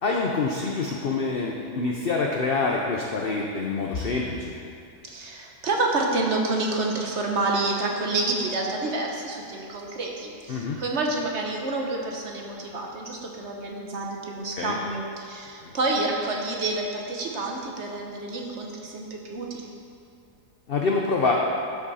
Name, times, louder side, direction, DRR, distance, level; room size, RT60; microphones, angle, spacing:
voice 1, 0.0-4.5 10.5-10.8 14.6-14.8 15.6-15.7 20.7-21.3, left 4 dB, 50° left, -1 dB, 0.7 m, -26 dB
voice 2, 5.1-19.7, right 2 dB, 50° right, 0 dB, 1.2 m, -28 dB
12.0 x 6.2 x 4.1 m, 2.6 s
omnidirectional pair, 1.7 m